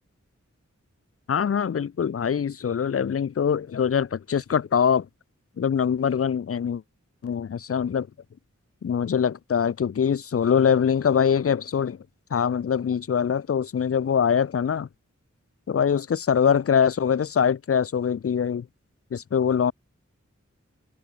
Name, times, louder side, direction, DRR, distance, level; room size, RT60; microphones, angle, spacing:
voice 1, 1.3-5.1 5.6-6.8 7.2-8.1 8.8-12.0 12.3-14.9 15.7-18.7 19.1-19.7, left 7 dB, 50° left, 0.4 m, -23 dB
wide cardioid pair, 45°, 30 cm